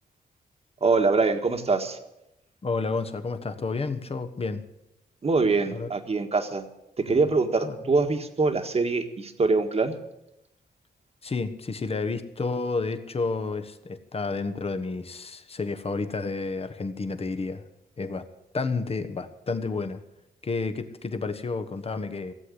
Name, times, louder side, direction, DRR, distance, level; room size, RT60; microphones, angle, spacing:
voice 1, 0.8-2.0 5.2-6.7 7.0-10.0, right 3 dB, 40° right, 6 dB, 1.7 m, -24 dB
voice 2, 2.6-4.6 5.7-5.9 7.1-7.2 7.6-7.7 11.2-17.6 18.0-18.2 18.5-20.0 20.4-22.3, left 3 dB, 35° left, 9 dB, 1.4 m, -30 dB
16.5 x 7.9 x 9.9 m, 0.88 s
cardioid pair, 95°, 16 cm